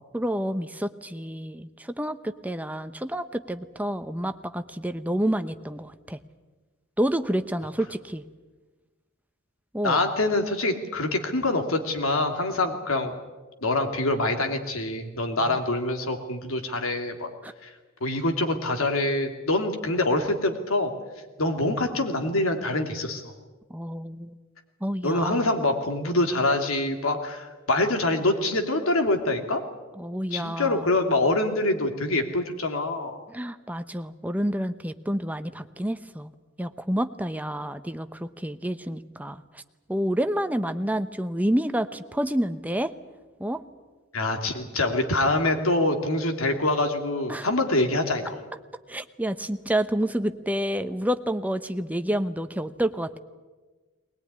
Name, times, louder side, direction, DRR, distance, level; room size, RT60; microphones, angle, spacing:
voice 1, 0.1-6.2 7.0-8.2 9.7-10.0 15.4-15.6 17.4-17.5 23.7-24.3 24.8-25.5 30.0-30.9 33.3-36.3 36.6-39.6 39.9-42.9 43.4-43.6 47.3-47.5 48.9-53.2, right 1 dB, 10° right, 9 dB, 0.9 m, -29 dB
voice 2, 9.8-13.1 13.6-17.3 17.6-17.7 18.0-20.9 21.4-23.3 25.0-29.6 30.3-33.2 44.1-48.4, left 2 dB, 85° left, 5 dB, 2.8 m, -25 dB
20.5 x 20.5 x 9.7 m, 1.3 s
head